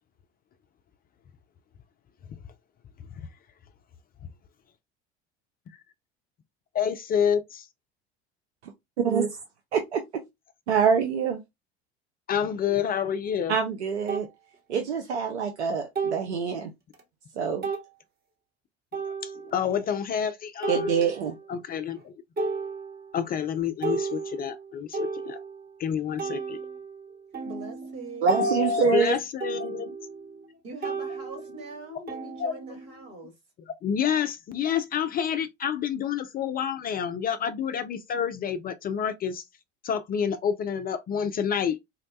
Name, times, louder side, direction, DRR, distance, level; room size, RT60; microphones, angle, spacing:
voice 1, 6.7-7.7 12.3-13.6 19.2-20.9 21.5-22.1 23.1-25.4 25.8-26.6 28.4-29.9 32.4-32.5 33.8-39.4 39.8-41.8, left 8 dB, 30° left, 0.4 m, -28 dB
voice 2, 9.0-9.4 9.7-10.2 10.7-11.4 13.5-14.3 14.7-16.7 17.4-17.7 20.7-21.4 28.2-29.2, right 6 dB, 80° right, 0.5 m, -25 dB
sound 1, 13.2-13.3 14.1-14.3 15.9-16.4 16.9-17.0 17.6-17.9 18.9-19.6 20.6-21.5 21.9-22.1 22.4-23.2 23.6-25.7 26.2-30.5 30.8-33.1, right 4 dB, 30° right, 1.0 m, -34 dB
voice 3, 27.4-28.6 30.6-33.3, right 2 dB, 65° right, 2.2 m, -42 dB
3.9 x 2.1 x 2.6 m
figure-of-eight pair, 70°, 33 cm